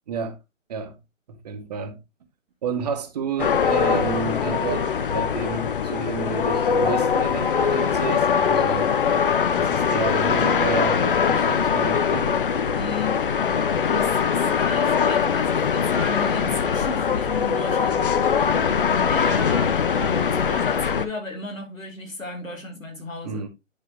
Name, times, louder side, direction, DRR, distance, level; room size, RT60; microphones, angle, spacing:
voice 1, 0.1-0.4 0.7-0.9 1.3-2.0 2.6-4.9 5.1-8.9 9.6-12.4 23.2-23.5, right 5 dB, 30° right, 1.1 m, -30 dB
sound 1, 3.4-21.1, left 7 dB, 45° left, 0.6 m, -22 dB
voice 2, 12.7-13.2 13.9-18.0 18.9-23.5, left 2 dB, 85° left, 3.2 m, -34 dB
10.5 x 4.7 x 3.0 m
figure-of-eight pair, 140°, 39 cm